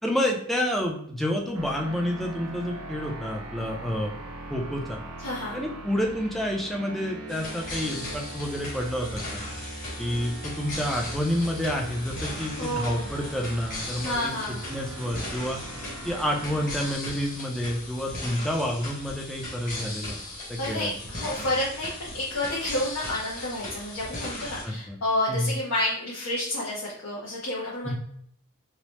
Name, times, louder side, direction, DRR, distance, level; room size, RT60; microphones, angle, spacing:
voice 1, 0.0-4.2 4.5-5.0 5.5-9.4 10.0-14.3 14.7-15.6 16.0-20.2 20.5-20.9 24.6-25.0 25.3-25.5 27.8-27.9, equal, ahead, 0 dB, 0.4 m, -29 dB
sound 1, 1.5-17.0, right 1 dB, 80° right, 0.5 m, -40 dB
voice 2, 5.2-5.6 12.6-13.1 14.0-14.6 20.6-27.9, left 1 dB, 70° left, -6 dB, 0.8 m, -30 dB
sound 2, 7.3-24.6, left 2 dB, 40° left, 1.0 m, -38 dB
2.8 x 2.0 x 3.1 m, 0.64 s
head